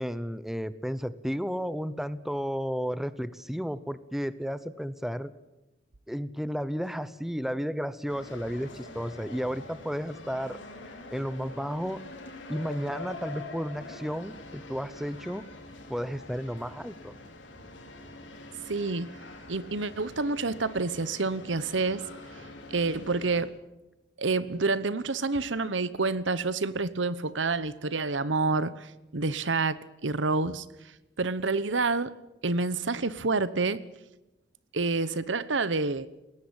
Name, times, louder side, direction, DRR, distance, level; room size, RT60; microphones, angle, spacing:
voice 1, 0.0-5.3 6.1-10.6 11.1-12.0 12.5-15.4 15.9-17.1, equal, ahead, 15 dB, 0.8 m, -33 dB
sound 1, 8.1-23.4, left 2 dB, 90° left, 4.9 m, -45 dB
voice 2, 18.7-19.2 19.5-22.0 22.7-23.5 24.2-30.6 31.2-32.1 32.4-33.8 34.7-36.1, right 3 dB, 85° right, 16 dB, 1.1 m, -28 dB
21.0 x 18.0 x 8.9 m, 0.97 s
head